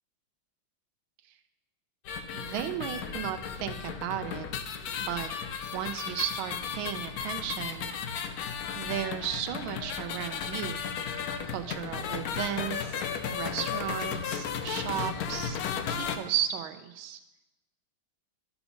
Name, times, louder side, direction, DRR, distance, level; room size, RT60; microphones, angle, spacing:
sound 1, 2.0-16.2, left 7 dB, 65° left, 0.9 m, -35 dB
voice 1, 2.3-4.5 5.0-5.3 5.7-8.2 8.8-10.8 11.4-13.0 13.3-15.6 15.9-17.2, right 11 dB, 85° right, 8 dB, 1.5 m, -34 dB
12.0 x 6.1 x 5.0 m, 1.0 s
omnidirectional pair, 2.2 m